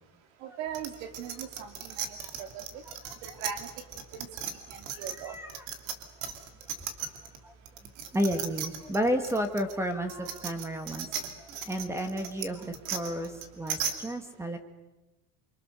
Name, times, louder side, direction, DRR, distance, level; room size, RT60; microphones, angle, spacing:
voice 1, 0.4-2.8 3.2-3.7 4.1-4.3 4.7-5.4, right 8 dB, 90° right, 8 dB, 3.1 m, -40 dB
sound 1, 0.7-7.4 7.7-13.9, right 8 dB, 60° right, 3.0 m, -36 dB
voice 2, 5.0-5.5 6.2-6.3 7.4-7.5 8.1-11.1 11.4-14.6, equal, 5° right, 8 dB, 1.5 m, -32 dB
28.5 x 25.0 x 6.8 m, 1.0 s
cardioid pair, 170°, 37 cm